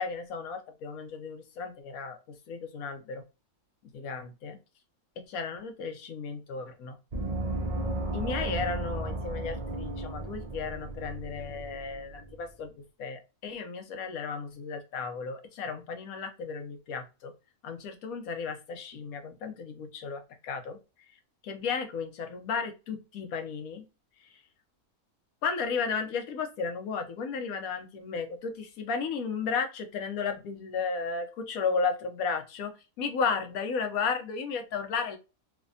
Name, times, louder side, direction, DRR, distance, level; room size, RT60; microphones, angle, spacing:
voice 1, 0.0-2.2 2.5-3.2 4.0-4.6 5.3-7.0 8.1-17.3 17.6-20.8 21.4-23.8 25.4-32.7 33.0-35.2, left 5 dB, 80° left, 6 dB, 1.1 m, -34 dB
Gong, 7.1-12.4, right 2 dB, 90° right, 0.3 m, -34 dB
3.2 x 2.1 x 2.4 m, 0.28 s
omnidirectional pair, 1.5 m